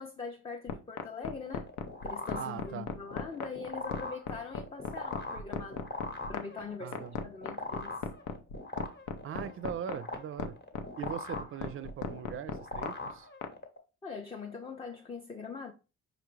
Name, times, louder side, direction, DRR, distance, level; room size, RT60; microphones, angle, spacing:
voice 1, 0.0-1.7 2.0-5.8 6.3-8.0 14.0-15.7, left 5 dB, 20° left, 0.5 m, -42 dB
sound 1, 0.7-13.5, left 7 dB, 85° left, 0.6 m, -36 dB
sound 2, 1.4-13.8, left 2 dB, 35° left, 0.9 m, -42 dB
voice 2, 2.3-2.9 6.8-7.2 9.2-13.3, right 8 dB, 45° right, 0.4 m, -40 dB
5.0 x 2.4 x 3.1 m
cardioid pair, 90°, 30 cm